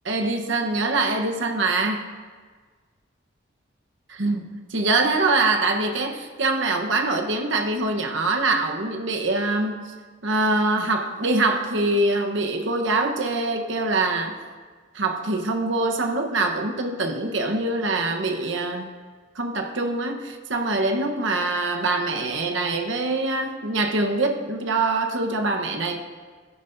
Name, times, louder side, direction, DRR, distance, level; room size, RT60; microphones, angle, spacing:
voice 1, 0.1-2.1 4.1-9.9 10.2-14.4 14.9-18.9 19.3-26.0, right 2 dB, 70° right, 3 dB, 1.1 m, -24 dB
16.5 x 10.0 x 2.7 m, 1.5 s
head